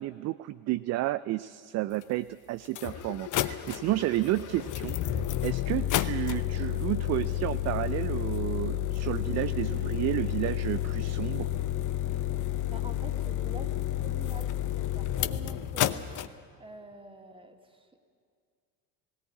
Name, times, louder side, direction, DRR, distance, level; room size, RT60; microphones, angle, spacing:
voice 1, 0.0-5.2 5.4-11.5, right 16 dB, 35° right, 14 dB, 0.4 m, -31 dB
sound 1, 2.0-2.1 2.6-16.3, left 11 dB, 40° left, 0.9 m, -31 dB
voice 2, 12.7-16.1 16.6-18.0, right 2 dB, 10° right, 5 dB, 2.2 m, -47 dB
17.5 x 17.0 x 9.7 m, 2.1 s
hypercardioid pair, 65°, 50 cm